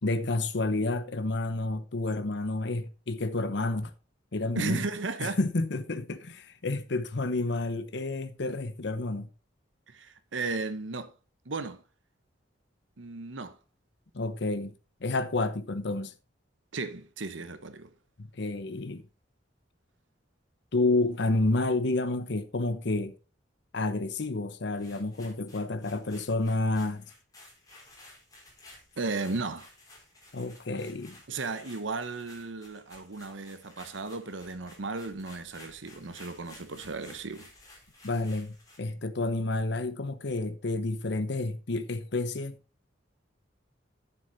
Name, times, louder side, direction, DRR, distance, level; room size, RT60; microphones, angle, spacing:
voice 1, 0.0-3.9 4.3-4.9 5.2-9.3 14.1-14.7 15.0-16.1 18.2-19.0 20.7-23.1 23.7-27.0 30.3-31.2 38.0-42.6, left 2 dB, 65° left, 0.9 m, -30 dB
voice 2, 4.5-5.4 9.9-11.1 11.5-11.8 13.0-13.6 16.7-17.9 29.0-29.7 31.3-37.5, right 3 dB, 85° right, 1.0 m, -35 dB
sound 1, 24.7-38.9, left 2 dB, 20° left, 4.1 m, -54 dB
9.7 x 7.2 x 4.0 m
head